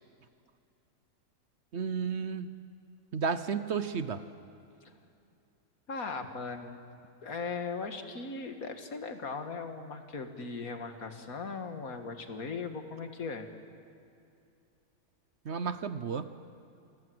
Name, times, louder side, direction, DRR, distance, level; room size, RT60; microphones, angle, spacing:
voice 1, 1.7-2.5 3.1-4.2 15.4-16.3, right 6 dB, 55° right, 11 dB, 1.0 m, -32 dB
voice 2, 5.9-6.8 7.2-13.5, left 4 dB, 70° left, 6 dB, 2.2 m, -38 dB
28.5 x 21.0 x 7.8 m, 2.6 s
omnidirectional pair, 1.5 m